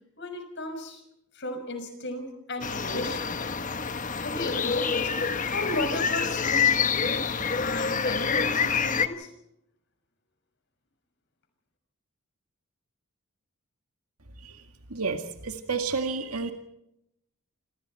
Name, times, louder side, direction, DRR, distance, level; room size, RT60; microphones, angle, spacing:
voice 1, 0.2-1.0 1.3-3.3 4.0-9.3, left 1 dB, 50° left, 6 dB, 6.0 m, -35 dB
sound 1, 2.6-9.1, left 6 dB, 35° left, 1.2 m, -27 dB
voice 2, 14.9-16.5, right 4 dB, 85° right, 6 dB, 2.1 m, -30 dB
27.5 x 26.0 x 4.4 m, 0.81 s
head